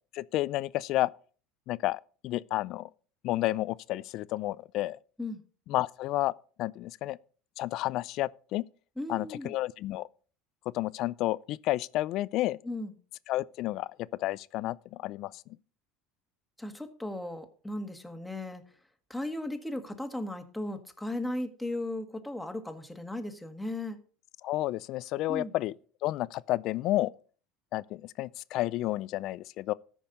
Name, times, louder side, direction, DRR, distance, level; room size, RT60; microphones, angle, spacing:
voice 1, 0.1-1.1 1.7-2.9 3.2-5.0 5.7-6.3 6.6-7.2 7.6-8.7 9.1-10.1 10.7-12.6 13.3-15.4 24.4-25.8 26.0-27.1 27.7-29.7, left 16 dB, 60° left, 0.4 m, -31 dB
voice 2, 9.0-9.5 12.6-12.9 16.6-18.6 19.1-24.0 25.3-25.5, left 1 dB, 5° left, 1.6 m, -36 dB
13.5 x 5.4 x 5.3 m
supercardioid pair, 95°, 0 cm